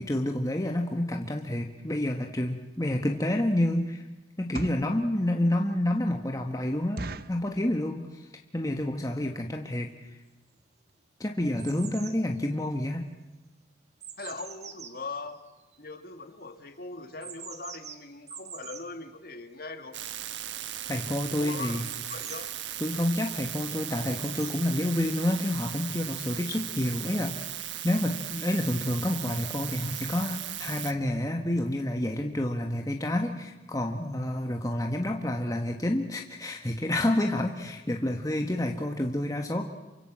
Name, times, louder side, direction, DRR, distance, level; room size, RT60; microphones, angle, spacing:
voice 1, 0.0-4.0 4.4-10.2 11.2-13.1 20.9-21.8 22.8-27.6 27.8-39.6, left 1 dB, 20° left, 3 dB, 1.4 m, -29 dB
sound 1, 2.7-2.9 3.4-3.6 4.3-5.0 5.5-5.6 5.9-6.0 6.4-6.5 7.0-7.5 8.1-8.4 8.6-8.7 8.9-9.2 9.8-9.9 10.1-10.2 10.6-10.7 10.9-11.0, right 2 dB, 50° right, 0.8 m, -39 dB
sound 2, 9.3-9.4 10.0-10.6 10.9-16.1 17.1-18.9 21.8-22.9 24.0-24.6 25.5-25.6, right 8 dB, 35° right, 1.6 m, -45 dB
voice 2, 14.2-15.4 15.8-20.0 21.4-21.8 22.1-22.5, left 3 dB, 50° left, 7 dB, 2.1 m, -40 dB
sound 3, 19.9-30.9, right 11 dB, 75° right, 1.3 m, -37 dB
28.5 x 24.0 x 7.5 m, 1.1 s
head